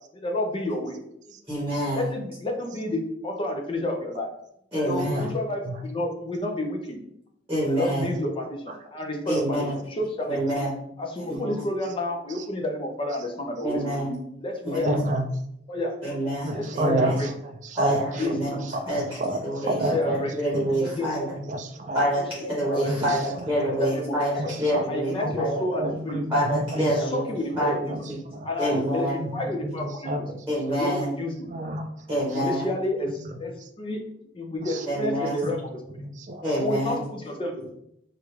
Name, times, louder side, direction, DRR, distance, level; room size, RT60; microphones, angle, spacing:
voice 1, 0.1-1.0 1.9-4.3 4.8-6.8 7.7-10.4 11.0-13.8 14.4-15.0 15.7-15.9 16.5-17.3 17.9-18.6 19.6-20.3 20.8-21.1 22.2-22.3 22.7-23.1 23.7-24.5 24.9-26.2 26.7-27.8 28.4-29.1 29.3-30.3 30.7-31.5 32.1-34.0 34.3-35.8 36.6-37.7, left 1 dB, 30° left, 2 dB, 0.5 m, -30 dB
voice 2, 1.5-2.1 4.7-5.3 7.5-8.1 9.3-9.7 10.3-10.7 11.3-11.6 13.6-14.1 14.6-15.0 16.0-17.2 17.8-19.1 19.4-21.3 21.9-25.6 26.3-27.3 27.6-28.2 28.6-29.1 30.5-31.1 32.1-32.7 34.8-35.4 36.4-37.0, equal, 15° right, -6 dB, 1.0 m, -27 dB
voice 3, 14.9-15.3 16.4-17.1 17.7-18.0 18.9-19.4 19.8-19.9 20.5-20.7 21.5-22.0 22.8-23.1 24.4-24.5 24.7-24.8 25.2-25.4 25.8-26.9 27.6-27.7 27.9-28.0 28.3-28.8 29.2-29.3 29.6-30.2 31.5-31.8 35.4-35.5 36.0-36.4, right 1 dB, 45° right, 5 dB, 0.4 m, -28 dB
3.2 x 2.4 x 3.1 m, 0.76 s
head